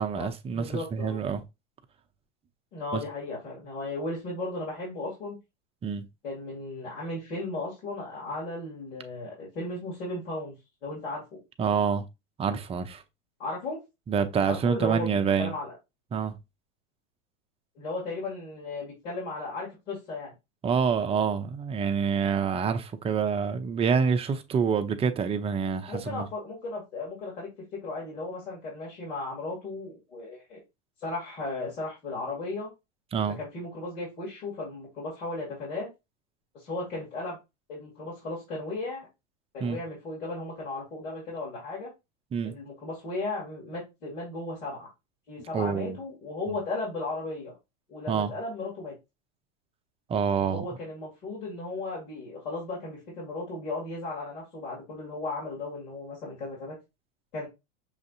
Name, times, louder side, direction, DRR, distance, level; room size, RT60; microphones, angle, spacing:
voice 1, 0.0-1.4 2.9-3.0 5.8-6.1 11.6-12.0 12.4-13.0 14.1-15.5 16.1-16.4 20.6-26.3 33.1-33.4 39.6-39.8 42.3-42.5 45.5-46.0 46.5-46.6 48.1-48.3 50.1-50.6, right 6 dB, 15° right, 0.4 m, -27 dB
voice 2, 0.5-1.2 2.7-5.4 6.2-11.4 13.4-13.8 14.5-15.1 15.4-15.7 17.8-20.3 25.9-30.6 31.0-32.7 33.4-35.9 36.5-37.4 37.7-39.1 39.5-41.9 42.4-44.9 45.3-47.5 47.9-48.9 50.4-56.8 57.3-57.5, left 2 dB, 80° left, 2.5 m, -35 dB
6.3 x 2.6 x 2.5 m
hypercardioid pair, 115°, 36 cm